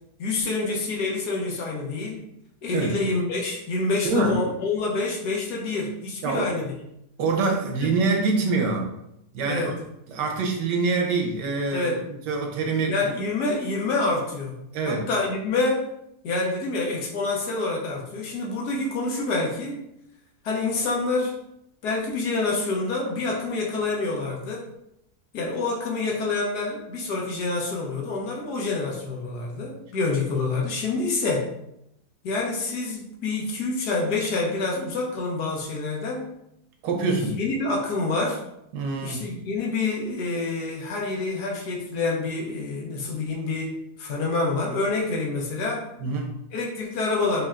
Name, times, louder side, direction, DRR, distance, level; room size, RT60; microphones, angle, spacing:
voice 1, 0.2-2.2 2.6-6.7 7.8-7.9 9.5-9.8 11.7-12.0 12.9-15.9 16.2-19.8 20.4-21.3 21.8-24.6 25.3-31.5 32.2-36.3 37.0-38.4 39.0-45.9 46.5-47.5, left 3 dB, 70° left, -2 dB, 1.4 m, -27 dB
voice 2, 4.0-4.3 6.2-6.5 7.2-8.9 9.3-9.8 10.1-12.9 14.7-15.1 36.8-37.4 38.7-39.3 46.0-46.3, right 3 dB, 85° right, 2 dB, 1.4 m, -25 dB
5.2 x 2.7 x 2.4 m, 0.81 s
omnidirectional pair, 1.8 m